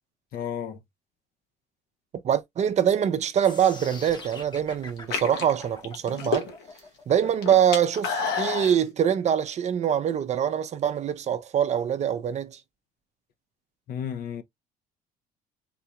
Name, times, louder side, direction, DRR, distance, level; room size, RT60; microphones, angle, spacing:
voice 1, 0.3-0.8 13.9-14.4, left 8 dB, 60° left, 0.6 m, -32 dB
voice 2, 2.2-6.5 7.1-12.6, right 9 dB, 40° right, 0.5 m, -24 dB
sound 1, 3.4-9.5, left 3 dB, 25° left, 0.8 m, -45 dB
sound 2, 3.9-4.4 5.0-6.8 7.1-8.8, left 5 dB, 80° left, 1.2 m, -30 dB
3.8 x 2.3 x 2.8 m
cardioid pair, 110°, 17 cm